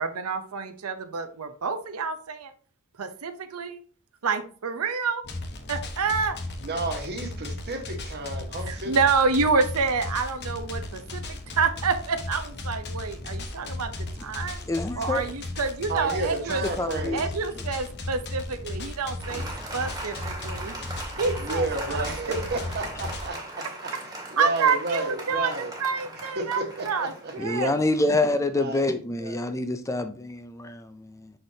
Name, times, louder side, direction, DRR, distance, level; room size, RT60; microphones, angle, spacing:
voice 1, 0.0-2.5 3.0-3.8 4.2-5.2 5.7-6.4 8.7-14.6 15.0-16.6 17.1-19.4 19.7-20.7 21.2-22.0 24.4-27.7, right 5 dB, 80° right, 0.7 m, -28 dB
sound 1, 5.2-23.3, left 2 dB, 50° left, 1.1 m, -36 dB
voice 2, 6.6-8.9 15.9-17.3 21.4-25.7 26.3-27.3 28.5-28.9 29.2-29.5, right 2 dB, 50° right, 1.4 m, -32 dB
voice 3, 14.7-15.2 16.8-17.2 27.4-31.3, left 2 dB, 15° left, 0.4 m, -26 dB
Applause, 19.2-28.2, right 2 dB, 15° right, 1.7 m, -39 dB
6.5 x 6.1 x 2.8 m
head